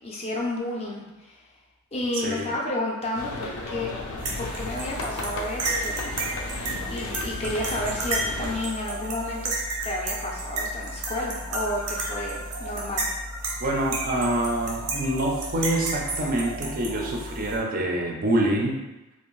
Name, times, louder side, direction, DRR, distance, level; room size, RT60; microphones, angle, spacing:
voice 1, 0.0-1.4 1.9-3.9 4.4-6.2 6.9-9.5 9.8-13.1, left 1 dB, 25° left, -2 dB, 0.4 m, -31 dB
voice 2, 2.2-2.5 13.6-18.8, right 1 dB, 40° right, 0 dB, 0.3 m, -26 dB
sound 1, 3.1-8.6, left 2 dB, 85° left, 0.5 m, -34 dB
sound 2, 4.2-17.6, right 2 dB, 90° right, 0.6 m, -32 dB
2.5 x 2.3 x 3.0 m, 1.0 s
head